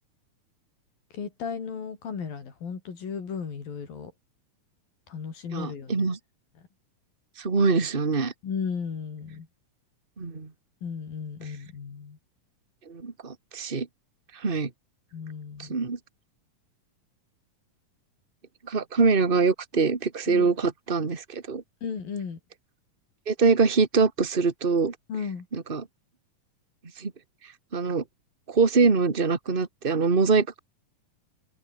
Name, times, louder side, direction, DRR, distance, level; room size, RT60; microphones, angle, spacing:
voice 1, 1.1-4.1 5.1-6.1 8.4-9.5 10.8-12.2 15.1-15.8 20.3-20.5 21.8-22.4 25.1-25.5, left 6 dB, 85° left, 6.0 m, -35 dB
voice 2, 5.5-6.2 7.4-8.3 10.2-10.5 12.9-13.9 14.4-14.7 15.6-16.0 18.7-21.6 23.3-24.9 25.5-25.8 27.0-27.1 27.7-28.0 28.5-30.6, right 4 dB, 20° right, 1.9 m, -24 dB
open air
omnidirectional pair, 4.0 m